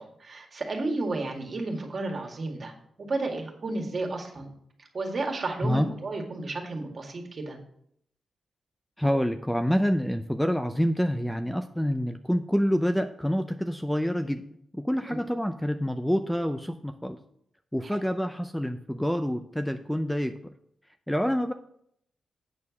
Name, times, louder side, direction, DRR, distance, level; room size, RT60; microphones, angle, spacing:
voice 1, 0.0-2.7 3.0-4.5 4.9-7.6 15.1-15.2 17.9-18.0, right 2 dB, 45° right, 2 dB, 2.0 m, -32 dB
voice 2, 9.0-14.4 14.7-17.2 17.7-20.3 21.1-21.5, equal, 5° left, 8 dB, 0.5 m, -27 dB
8.5 x 4.6 x 7.0 m, 0.70 s
cardioid pair, 100°, 0 cm